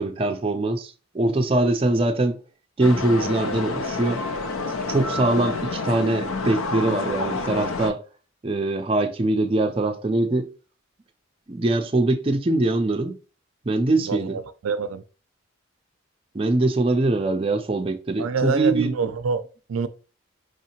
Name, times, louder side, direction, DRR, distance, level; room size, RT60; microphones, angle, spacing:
voice 1, 0.0-2.4 2.8-4.2 4.9-8.0 8.4-10.5 11.5-13.2 13.7-14.4 16.3-18.9, right 2 dB, 25° right, 0.4 m, -22 dB
sound 1, 2.8-7.9, left 3 dB, 85° left, 0.5 m, -29 dB
voice 2, 14.0-15.0 18.2-19.9, right 5 dB, 85° right, 0.4 m, -26 dB
4.9 x 2.7 x 2.8 m
head